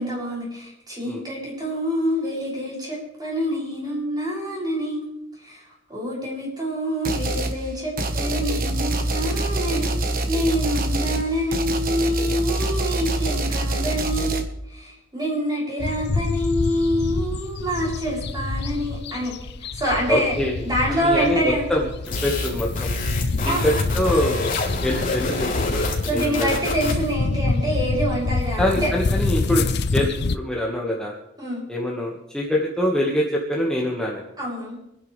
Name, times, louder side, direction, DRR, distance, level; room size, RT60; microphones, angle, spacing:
voice 1, 0.0-5.1 5.4-5.6 5.9-9.9 10.3-19.3 19.7-21.7 23.5-23.6 26.1-28.9 31.4-31.6 34.4-34.8, equal, 20° right, -5 dB, 7.5 m, -26 dB
sound 1, 7.0-7.6 8.0-14.4, right 2 dB, 50° right, 1.4 m, -25 dB
sound 2, 15.8-30.4, left 3 dB, 60° left, 0.7 m, -27 dB
voice 2, 20.1-20.6 20.9-21.9 22.2-22.9 23.4-24.6 24.8-26.6 28.6-29.7 29.9-31.1 31.7-34.3, left 1 dB, 5° left, -3 dB, 1.8 m, -24 dB
sound 3, 22.0-27.1, left 2 dB, 45° left, 3.3 m, -28 dB
27.0 x 11.0 x 3.5 m, 0.83 s
head